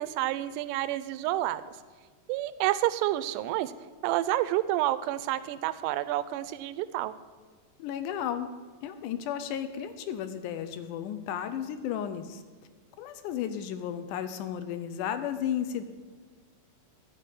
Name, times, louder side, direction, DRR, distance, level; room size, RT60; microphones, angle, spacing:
voice 1, 0.0-1.6 2.3-3.7 4.0-7.1, right 14 dB, 80° right, 13 dB, 2.0 m, -29 dB
voice 2, 7.8-8.5 8.8-12.4 13.0-15.8, left 9 dB, 80° left, 10 dB, 2.0 m, -33 dB
12.0 x 5.0 x 8.3 m, 1.5 s
omnidirectional pair, 3.9 m